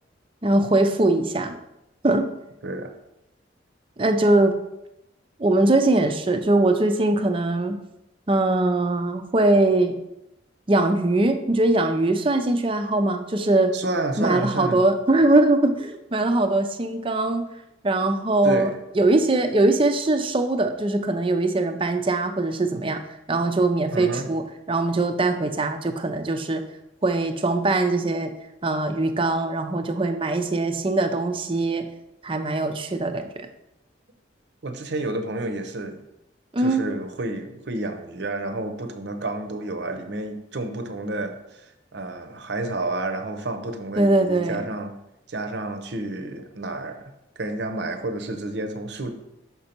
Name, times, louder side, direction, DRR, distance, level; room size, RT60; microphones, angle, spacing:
voice 1, 0.4-1.5 2.0-2.3 4.0-4.6 5.4-7.8 8.3-10.0 10.7-13.7 14.2-17.4 17.8-23.0 23.3-24.4 24.7-26.6 27.0-28.3 28.6-31.9 32.2-33.5 36.5-36.8 44.0-44.6, right 2 dB, 30° right, 7 dB, 0.5 m, -21 dB
voice 2, 13.7-14.8 18.4-18.7 23.9-24.3 34.6-36.0 36.6-44.9 45.3-49.1, right 2 dB, 65° right, 7 dB, 0.8 m, -30 dB
6.0 x 5.3 x 4.4 m, 0.88 s
head